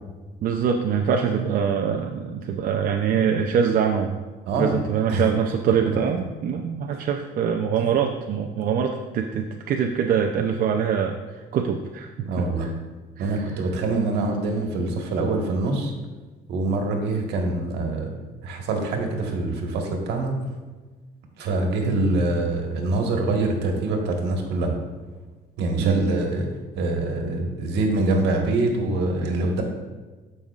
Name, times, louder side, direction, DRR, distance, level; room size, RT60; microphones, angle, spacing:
voice 1, 0.4-4.2 4.6-12.7 13.2-13.6 25.8-26.0, right 7 dB, 55° right, 3 dB, 0.6 m, -24 dB
voice 2, 12.2-12.7 13.2-15.9 16.5-18.1 18.4-20.4 21.4-24.7 25.6-26.5 26.7-29.6, right 2 dB, 80° right, 2 dB, 1.5 m, -24 dB
13.5 x 5.4 x 2.4 m, 1.3 s
cardioid pair, 110°, 17 cm